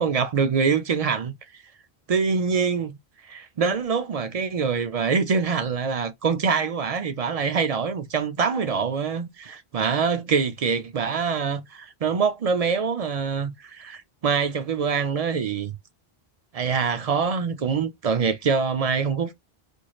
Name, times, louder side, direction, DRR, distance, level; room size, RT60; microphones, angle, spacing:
voice 1, 0.0-1.3 2.1-3.0 3.3-15.7 16.5-19.3, right 5 dB, 50° right, 0.5 m, -24 dB
4.3 x 3.0 x 2.3 m
omnidirectional pair, 1.1 m